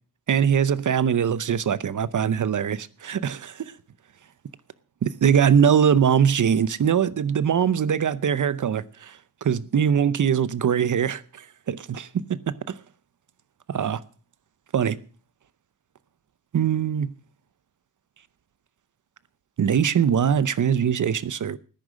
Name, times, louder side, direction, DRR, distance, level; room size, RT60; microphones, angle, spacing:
voice 1, 0.3-3.7 5.0-12.8 13.7-14.0 14.7-15.0 16.5-17.1 19.6-21.6, right 8 dB, 60° right, 0.8 m, -22 dB
14.0 x 10.5 x 6.3 m
wide cardioid pair, 95°, 35 cm